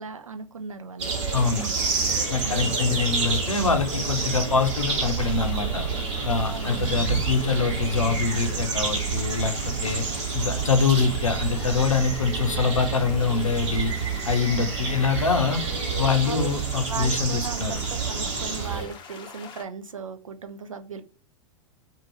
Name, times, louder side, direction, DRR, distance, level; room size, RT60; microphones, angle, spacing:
voice 1, 0.0-1.1 2.4-2.8 6.4-7.1 16.2-16.5 16.9-21.0, right 5 dB, 85° right, 8 dB, 0.4 m, -37 dB
sound 1, 1.0-18.8, right 5 dB, 65° right, 1.2 m, -28 dB
voice 2, 1.3-1.7 2.3-5.8 6.2-9.5 9.8-10.0 10.3-13.9 14.3-15.6 16.0-17.8, left 5 dB, 85° left, 7 dB, 0.6 m, -24 dB
sound 2, 1.3-19.6, left 5 dB, 30° left, 0.6 m, -44 dB
2.6 x 2.5 x 2.9 m, 0.36 s
figure-of-eight pair, 95°, 17 cm